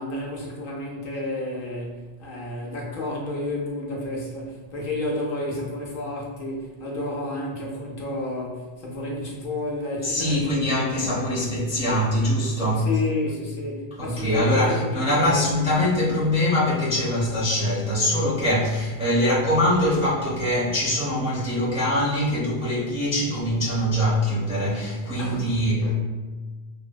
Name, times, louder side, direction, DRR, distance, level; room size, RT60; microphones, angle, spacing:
voice 1, 0.0-10.9 12.8-15.6 25.2-25.9, left 1 dB, 65° left, -3 dB, 0.7 m, -31 dB
voice 2, 10.0-12.9 14.0-25.9, left 1 dB, 10° right, -8 dB, 0.5 m, -23 dB
3.2 x 2.1 x 2.2 m, 1.3 s
omnidirectional pair, 1.0 m